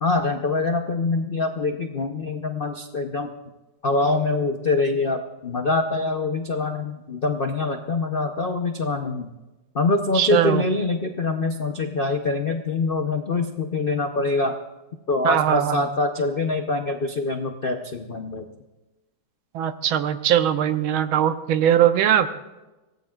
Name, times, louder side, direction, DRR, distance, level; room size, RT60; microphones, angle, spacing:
voice 1, 0.0-3.3 3.8-9.3 9.7-14.6 15.1-18.5, left 3 dB, 85° left, 5 dB, 0.4 m, -24 dB
voice 2, 10.1-10.6 15.2-15.8 19.5-22.3, right 10 dB, 80° right, 10 dB, 1.6 m, -20 dB
24.0 x 17.5 x 2.4 m, 1.1 s
omnidirectional pair, 2.2 m